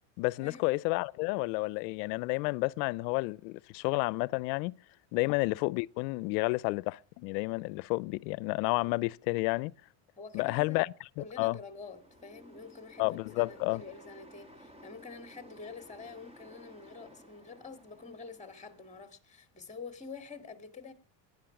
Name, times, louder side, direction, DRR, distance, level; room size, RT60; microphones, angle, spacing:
voice 1, 0.2-4.7 5.1-9.7 10.3-11.6 13.0-13.8, left 24 dB, 85° left, 0.6 m, -31 dB
voice 2, 10.2-10.9 11.2-20.9, left 4 dB, 15° left, 2.4 m, -47 dB
sound 1, 11.2-19.1, equal, 10° right, 1.6 m, -56 dB
18.0 x 10.5 x 5.9 m
supercardioid pair, 120°, 48 cm